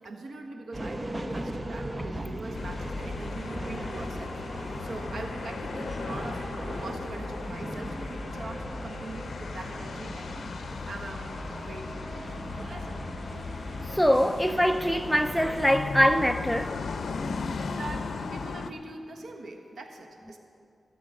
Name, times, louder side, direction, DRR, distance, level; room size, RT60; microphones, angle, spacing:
voice 1, 0.0-10.4 10.8-11.9 12.6-13.0 17.7-20.4, right 2 dB, 75° right, 1.4 m, -42 dB
sound 1, 0.7-15.7, right 1 dB, 20° right, 0.9 m, -38 dB
sound 2, 2.5-18.7, left 4 dB, 75° left, 0.6 m, -37 dB
voice 2, 13.9-16.9, equal, ahead, 0.5 m, -23 dB
16.5 x 7.9 x 6.4 m
wide cardioid pair, 90°, 0 cm